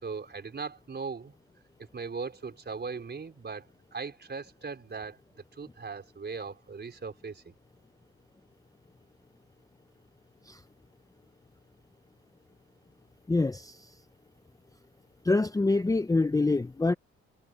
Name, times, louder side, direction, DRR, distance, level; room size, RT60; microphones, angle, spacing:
voice 1, 0.0-1.3 1.9-5.2 5.6-7.5, right 5 dB, 35° right, 4.8 m, -39 dB
voice 2, 13.3-13.8 15.2-16.9, left 3 dB, 10° left, 0.7 m, -25 dB
cardioid pair, 90°, 30 cm